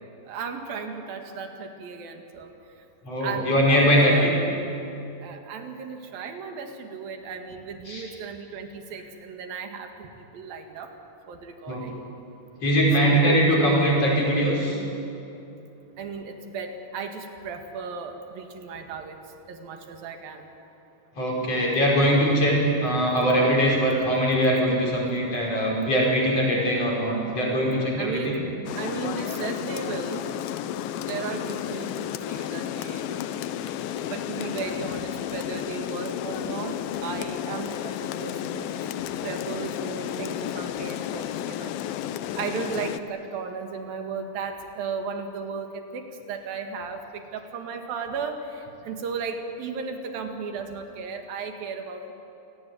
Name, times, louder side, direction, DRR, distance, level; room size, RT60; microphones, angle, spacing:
voice 1, 0.3-2.5 3.2-4.3 5.2-10.9 11.3-12.0 13.0-13.8 16.0-19.2 19.5-20.5 28.0-28.4 28.8-30.3 31.0-38.9 39.2-41.7 42.4-52.1, right 5 dB, 75° right, 5 dB, 3.7 m, -35 dB
voice 2, 3.0-4.3 7.9-8.0 11.7-11.8 12.6-14.8 21.2-28.4, equal, 40° left, -2 dB, 6.3 m, -21 dB
Rain, 28.7-43.0, left 10 dB, 90° left, 2.6 m, -32 dB
28.0 x 18.0 x 9.5 m, 2.8 s
omnidirectional pair, 4.2 m